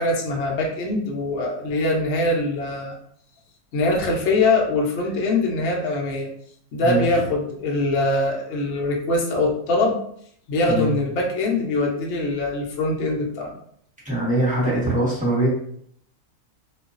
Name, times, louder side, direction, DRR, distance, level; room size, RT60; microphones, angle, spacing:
voice 1, 0.0-2.9 3.7-6.3 6.7-10.0 10.5-13.6, left 2 dB, 60° left, -2 dB, 0.8 m, -23 dB
voice 2, 6.8-7.2 10.7-11.0 14.0-15.5, right 1 dB, 5° right, -9 dB, 0.8 m, -22 dB
2.4 x 2.3 x 2.4 m, 0.65 s
omnidirectional pair, 1.7 m